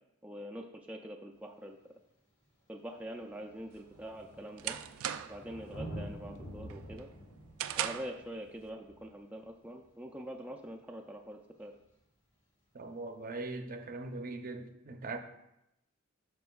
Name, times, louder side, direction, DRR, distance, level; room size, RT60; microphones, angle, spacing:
voice 1, 0.2-1.9 2.7-4.8 5.3-7.1 7.8-11.7, right 1 dB, 5° right, 1 dB, 0.4 m, -44 dB
Thunder, 1.4-1.5 2.4-2.5 2.8-10.1 11.8-11.9, equal, 70° left, 2.2 m, -48 dB
sound 1, 3.8-5.5 5.9-6.3 6.7-8.2, right 10 dB, 85° right, 0.4 m, -38 dB
voice 2, 12.7-15.2, right 3 dB, 45° right, 6 dB, 0.6 m, -40 dB
9.2 x 6.0 x 2.3 m, 0.85 s
head